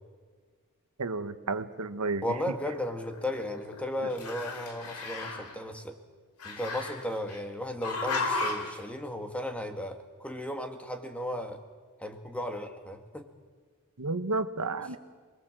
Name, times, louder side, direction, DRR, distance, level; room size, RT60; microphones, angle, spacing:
voice 1, 1.0-2.2 14.0-15.0, right 3 dB, 90° right, 10 dB, 1.2 m, -31 dB
voice 2, 2.2-6.0 6.4-11.6 12.0-13.3, left 1 dB, 5° left, 6 dB, 1.8 m, -35 dB
Growling, 2.6-3.8 4.1-5.5 6.4-7.4 7.8-8.8, left 3 dB, 80° left, 3.4 m, -35 dB
27.5 x 21.0 x 7.6 m, 1.5 s
head